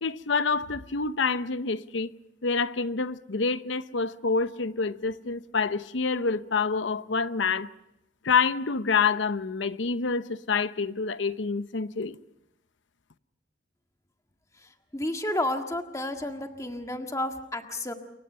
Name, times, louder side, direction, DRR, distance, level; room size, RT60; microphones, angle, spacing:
voice 1, 0.0-2.1 2.4-7.7 8.2-12.2, left 4 dB, 80° left, 0.8 m, -27 dB
voice 2, 14.9-17.9, left 1 dB, 15° left, 1.7 m, -31 dB
28.0 x 23.5 x 5.6 m
head